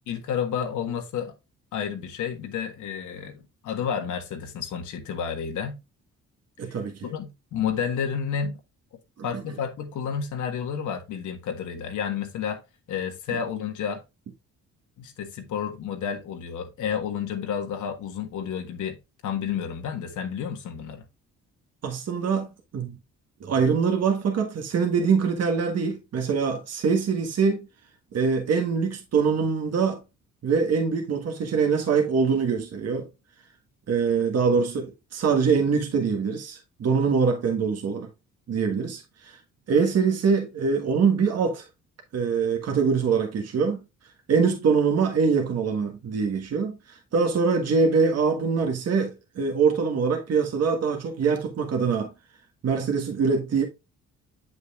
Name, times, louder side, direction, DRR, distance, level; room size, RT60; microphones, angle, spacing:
voice 1, 0.1-1.3 1.7-5.8 7.0-8.6 9.2-12.6 12.9-14.0 15.0-19.0 19.2-21.0, left 7 dB, 75° left, 1.5 m, -30 dB
voice 2, 6.6-7.1 9.2-9.4 21.8-22.9 23.4-27.7 28.1-30.0 30.4-33.1 33.9-38.1 38.5-39.4 39.7-41.7 42.1-43.8 44.3-52.1 52.6-53.6, right 5 dB, 55° right, 1.5 m, -24 dB
7.8 x 6.4 x 2.4 m
cardioid pair, 90°, 30 cm